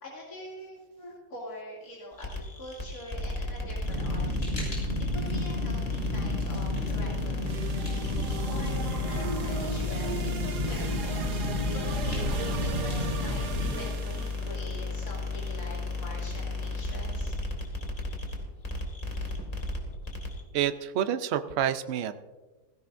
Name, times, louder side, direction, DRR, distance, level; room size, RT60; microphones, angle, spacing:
voice 1, 0.0-4.5 5.1-7.7 8.5-17.3, left 1 dB, 65° left, -6 dB, 3.1 m, -44 dB
sound 1, 2.2-20.4, left 3 dB, 25° left, 2.0 m, -33 dB
Fire, 3.8-13.7, left 1 dB, 40° left, 5.6 m, -33 dB
sound 2, 7.4-14.5, right 4 dB, 75° right, 1.6 m, -38 dB
voice 2, 20.5-22.1, right 9 dB, 55° right, 10 dB, 0.7 m, -28 dB
17.0 x 16.0 x 2.6 m, 1.2 s
omnidirectional pair, 1.8 m